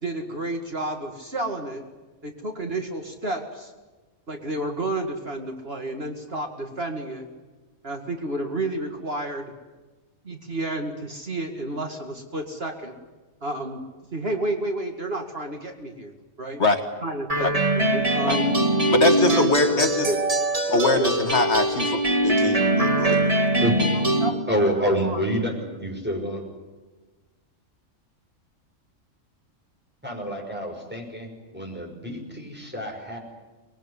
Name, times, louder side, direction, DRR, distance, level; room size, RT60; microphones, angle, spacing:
voice 1, 0.0-1.8 2.2-3.7 4.3-7.3 7.8-9.5 10.2-12.9 13.4-13.8 14.1-16.1 16.4-16.6 17.0-18.5 19.2-19.8 20.0-20.2 20.9-21.1 24.2-24.3 24.7-25.6, right 1 dB, 50° right, 4 dB, 2.4 m, -31 dB
sound 1, 17.3-24.3, right 1 dB, 25° right, 2.4 m, -22 dB
voice 2, 18.9-20.1 20.7-23.2, left 2 dB, 60° left, 6 dB, 2.0 m, -23 dB
voice 3, 24.5-25.5 25.8-26.4 30.0-33.2, equal, 10° right, 0 dB, 5.9 m, -27 dB
24.0 x 21.0 x 9.9 m, 1.2 s
omnidirectional pair, 1.3 m